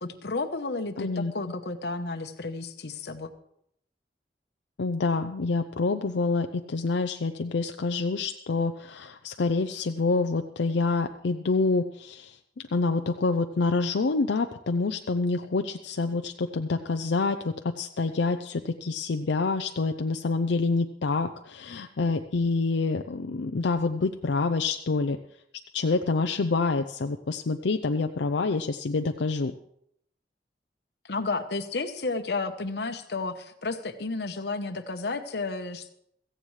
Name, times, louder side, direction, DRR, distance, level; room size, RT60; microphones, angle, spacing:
voice 1, 0.0-3.3 31.0-35.9, left 3 dB, 65° left, 9 dB, 1.0 m, -32 dB
voice 2, 1.0-1.3 4.8-12.4 12.7-25.2 25.7-29.5, left 3 dB, 85° left, 6 dB, 0.5 m, -27 dB
16.5 x 14.5 x 3.2 m, 0.73 s
head